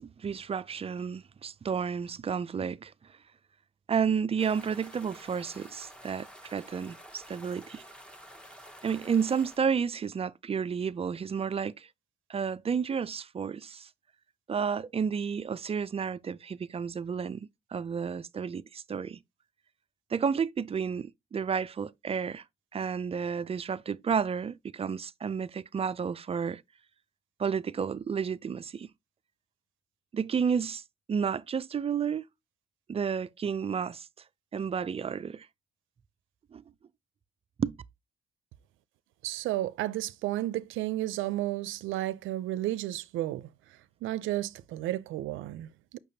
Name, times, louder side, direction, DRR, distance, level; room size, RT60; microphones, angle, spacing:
voice 1, 0.0-2.9 3.9-7.8 8.8-11.9 12.3-13.9 14.5-19.2 20.1-22.4 22.7-26.6 27.4-28.9 30.1-30.8 31.1-32.2 32.9-34.1 34.5-35.5 36.5-36.6 37.6-37.8, right 6 dB, 30° right, 0.4 m, -31 dB
sound 1, 4.4-9.6, equal, 5° left, 1.0 m, -50 dB
voice 2, 39.2-43.5 44.0-46.0, right 15 dB, 85° right, 0.5 m, -32 dB
6.8 x 5.8 x 2.7 m
cardioid pair, 90°, 20 cm